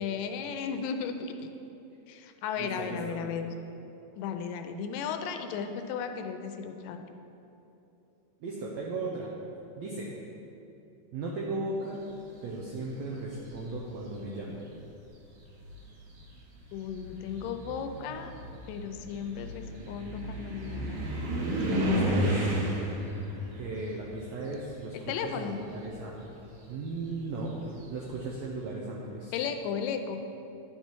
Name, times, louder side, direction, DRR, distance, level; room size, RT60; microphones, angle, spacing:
voice 1, 0.0-1.3 2.1-3.5 4.2-7.0 16.7-18.3 18.7-21.0 21.5-22.6 25.1-25.6 29.3-30.2, left 7 dB, 85° left, 7 dB, 2.2 m, -35 dB
voice 2, 2.6-3.2 8.4-9.3 9.8-10.1 11.1-12.0 12.4-14.7 21.6-22.5 23.5-26.3 26.7-29.4, right 2 dB, 85° right, -3 dB, 1.5 m, -36 dB
sound 1, 13.2-13.7 14.7-14.8 15.4-25.3 25.6-28.2, right 1 dB, 60° right, 2.1 m, -34 dB
10.5 x 5.6 x 4.5 m, 2.9 s
omnidirectional pair, 3.9 m